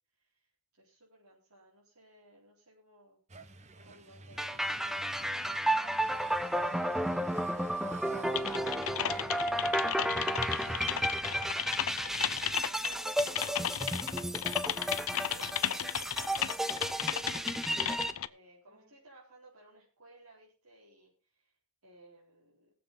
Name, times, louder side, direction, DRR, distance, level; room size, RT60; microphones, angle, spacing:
voice 1, 0.1-3.2 3.7-4.8 12.1-17.4 18.3-22.7, right 1 dB, 75° right, -7 dB, 4.3 m, -59 dB
sound 1, 3.3-12.6, right 2 dB, 30° right, 0.9 m, -51 dB
sound 2, 4.4-18.1, right 1 dB, ahead, 0.5 m, -33 dB
voice 2, 5.6-9.4 9.8-11.7 18.7-18.9, right 2 dB, 55° right, -2 dB, 6.7 m, -53 dB
Typing, 8.3-18.3, left 11 dB, 70° left, 0.6 m, -34 dB
20.5 x 7.7 x 3.9 m, 0.38 s
head